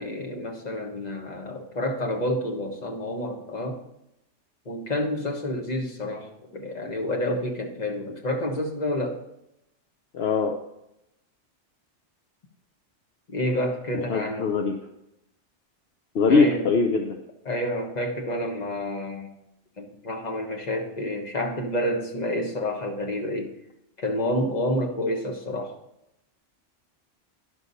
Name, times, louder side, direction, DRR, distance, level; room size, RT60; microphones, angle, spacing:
voice 1, 0.0-3.8 4.6-9.2 13.3-14.5 16.3-16.8 17.4-19.3 19.8-23.5 24.0-25.7, left 1 dB, 35° left, 2 dB, 1.4 m, -29 dB
voice 2, 10.1-10.5 13.9-14.7 16.1-17.2, left 4 dB, 60° left, 2 dB, 1.0 m, -22 dB
10.5 x 6.4 x 4.1 m, 0.85 s
omnidirectional pair, 1.2 m